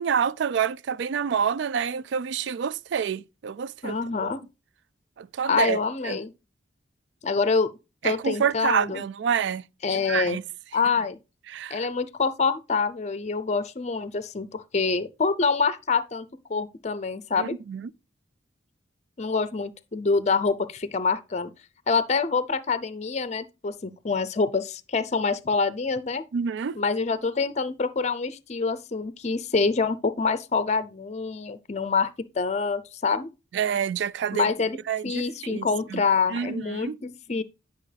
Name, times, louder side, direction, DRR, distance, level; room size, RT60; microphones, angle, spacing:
voice 1, 0.0-4.3 5.2-5.8 6.0-6.2 8.0-9.6 9.9-10.4 11.5-11.9 17.4-17.9 26.3-26.8 33.5-34.5 34.9-36.0 36.3-37.0, right 7 dB, 65° right, 0.3 m, -28 dB
voice 2, 3.8-4.4 5.5-6.3 7.2-7.7 8.0-9.0 9.8-10.4 10.7-11.2 11.7-17.6 19.2-21.5 21.9-26.2 26.8-32.1 32.4-33.3 34.3-34.8 35.0-37.4, left 4 dB, 35° left, 0.5 m, -26 dB
10.5 x 5.6 x 3.3 m
head